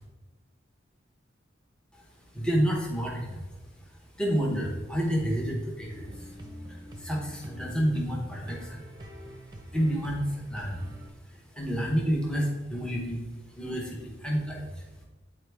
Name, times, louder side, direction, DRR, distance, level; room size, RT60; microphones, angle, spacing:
voice 1, 2.3-3.5 3.8-3.9 4.2-6.4 6.7-8.8 9.7-10.9 11.3-14.8, equal, 5° left, -3 dB, 1.0 m, -30 dB
sound 1, 5.9-11.1, equal, 20° right, 0.8 m, -45 dB
8.7 x 4.3 x 3.4 m, 1.1 s
head